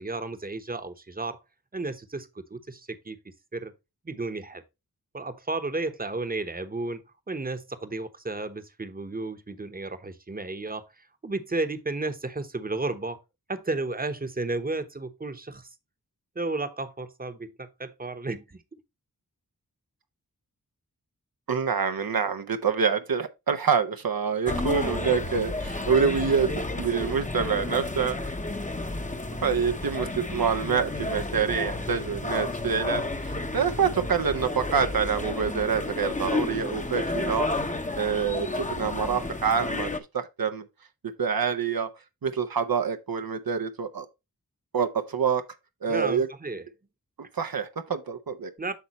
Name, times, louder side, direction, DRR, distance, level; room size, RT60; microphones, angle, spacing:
voice 1, 0.0-1.4 1.7-3.7 4.0-4.6 5.1-10.8 11.2-13.2 13.5-15.7 16.4-18.6 45.9-46.6 48.6-48.7, right 2 dB, 25° right, 1.0 m, -33 dB
voice 2, 21.5-28.3 29.4-37.6 38.0-40.6 41.2-41.9 42.2-44.1 44.7-45.4 45.8-46.3 47.3-48.5, right 6 dB, 75° right, 0.8 m, -26 dB
sound 1, 24.5-40.0, left 2 dB, 20° left, 0.9 m, -31 dB
8.4 x 5.6 x 3.0 m
wide cardioid pair, 60°, 36 cm